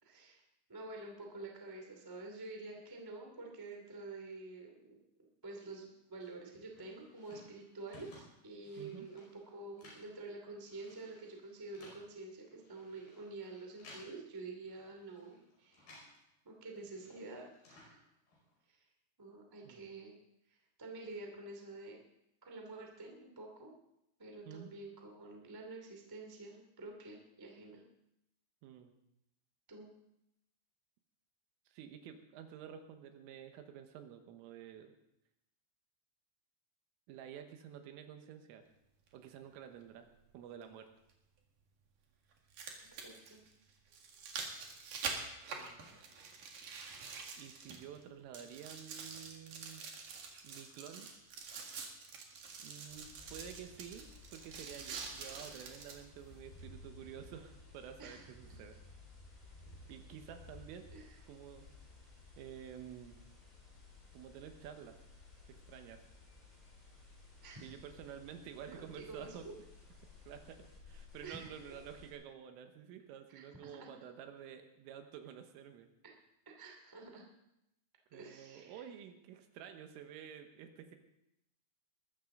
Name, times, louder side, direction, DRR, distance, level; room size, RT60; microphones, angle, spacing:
voice 1, 0.0-0.4 0.7-5.0 5.4-9.3 9.5-16.0 16.4-18.0 18.7-18.8 19.2-20.1 20.5-22.0 22.4-23.7 24.2-27.8 29.7-29.9 42.8-43.4 58.0-58.6 60.9-61.0 67.4-67.7 68.7-69.5 71.2-71.5 73.3-73.9 76.0-76.1 76.4-77.2 78.1-78.8, right 3 dB, 10° right, 1 dB, 0.9 m, -49 dB
sound 1, 6.2-16.2 16.5-18.6, left 1 dB, 50° left, 6.9 m, -60 dB
voice 2, 8.8-9.1 19.7-19.9 24.5-24.7 28.6-28.9 31.7-34.9 37.1-38.7 39.1-40.9 45.5-45.8 47.4-49.8 50.4-51.1 52.6-58.8 59.9-60.9 61.3-61.7 62.4-63.2 64.1-65.0 65.5-66.0 67.6-69.5 70.2-75.9 78.1-81.0, right 9 dB, 85° right, 6 dB, 3.8 m, -50 dB
sound 2, 39.1-39.2 41.1-41.2 42.3-48.0 48.3-56.0 56.6-56.7, right 5 dB, 55° right, 2.7 m, -46 dB
sound 3, 52.9-72.1, left 3 dB, 10° left, 4.1 m, -57 dB
21.0 x 14.0 x 3.9 m, 0.85 s
omnidirectional pair, 5.8 m